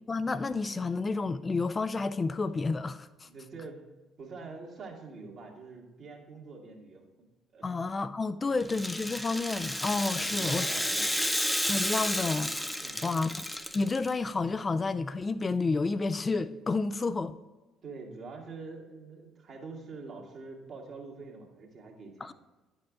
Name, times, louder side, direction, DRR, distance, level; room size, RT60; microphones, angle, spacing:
voice 1, 0.1-3.3 7.6-10.7 11.7-12.6 13.0-13.3 13.7-17.4 22.2-22.3, left 3 dB, 30° left, 0.3 m, -30 dB
voice 2, 3.2-3.8 4.2-7.0 7.5-7.6 10.1-11.2 12.7-13.2 17.8-22.3, right 4 dB, 55° right, 1.7 m, -45 dB
Rattle (instrument), 8.6-14.1, equal, 5° left, 0.8 m, -32 dB
10.0 x 5.3 x 3.7 m
hypercardioid pair, 50°, 0 cm